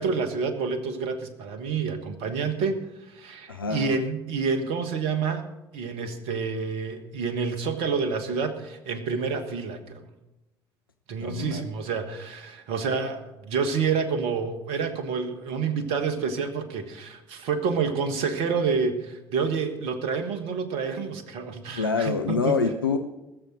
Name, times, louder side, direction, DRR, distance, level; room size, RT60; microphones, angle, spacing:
voice 1, 0.0-5.5 5.7-10.1 11.1-22.5, right 5 dB, 60° right, 9 dB, 1.5 m, -28 dB
voice 2, 3.5-3.9 11.2-11.7 21.8-23.0, left 5 dB, 85° left, 6 dB, 0.5 m, -26 dB
19.5 x 7.1 x 6.2 m, 0.99 s
figure-of-eight pair, 55°, 12 cm